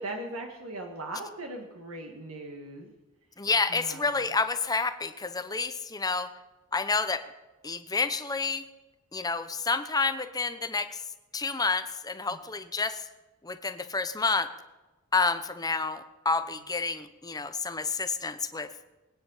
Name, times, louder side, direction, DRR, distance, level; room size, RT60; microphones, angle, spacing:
voice 1, 0.0-2.9 3.7-4.1 12.3-12.4, right 2 dB, 70° right, 2 dB, 1.7 m, -39 dB
voice 2, 3.4-6.3 6.7-7.2 7.6-8.6 9.1-11.0 11.3-13.1 13.4-14.5 15.1-18.7, left 4 dB, 15° left, 10 dB, 0.8 m, -29 dB
22.0 x 9.6 x 5.6 m, 1.2 s
head